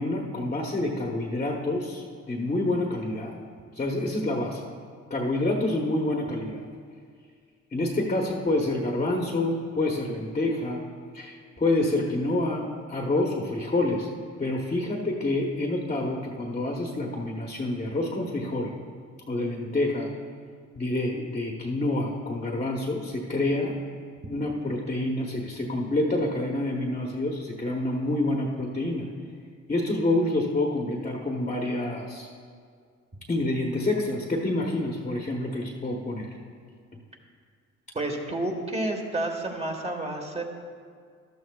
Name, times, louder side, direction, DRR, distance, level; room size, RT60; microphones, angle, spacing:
voice 1, 0.0-3.3 3.7-4.6 5.1-6.6 7.7-10.8 11.1-14.1 14.4-18.7 19.3-20.1 20.7-23.8 24.3-29.1 29.7-32.3 33.3-36.3 36.9-37.0, left 2 dB, 25° left, 0 dB, 1.1 m, -27 dB
voice 2, 37.9-40.4, right 1 dB, 20° right, 2 dB, 1.6 m, -30 dB
14.0 x 12.0 x 2.4 m, 2.1 s
cardioid pair, 90°, 30 cm